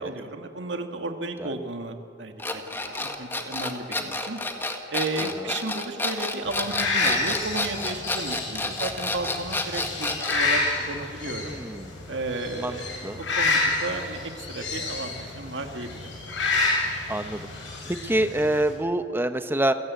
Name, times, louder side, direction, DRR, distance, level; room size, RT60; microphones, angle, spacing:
voice 1, 0.0-4.4 4.9-11.6 12.1-16.1, right 2 dB, 70° right, 5 dB, 1.9 m, -34 dB
sound 1, 2.4-10.5, left 2 dB, 10° left, 1.7 m, -30 dB
voice 2, 5.2-5.5 11.4-11.9 12.5-12.8 13.0-13.2 17.1-17.5 17.9-19.7, right 1 dB, 10° right, 9 dB, 1.0 m, -26 dB
sound 2, 6.5-18.7, left 3 dB, 80° left, 6.4 m, -29 dB
28.0 x 17.0 x 8.4 m, 2.6 s
head